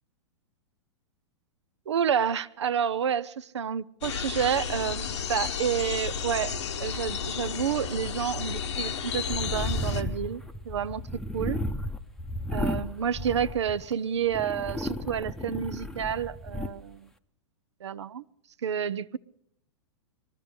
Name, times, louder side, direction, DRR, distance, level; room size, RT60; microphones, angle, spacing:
voice 1, 1.9-11.0 11.3-11.6 12.5-17.1 17.8-18.2 18.6-19.2, right 8 dB, 70° right, 0.5 m, -29 dB
sound 1, 4.0-10.0, left 6 dB, 70° left, 1.1 m, -32 dB
sound 2, 9.1-13.9 14.3-16.7, left 1 dB, 5° left, 0.8 m, -34 dB
21.5 x 12.5 x 5.1 m
figure-of-eight pair, 105°, 15 cm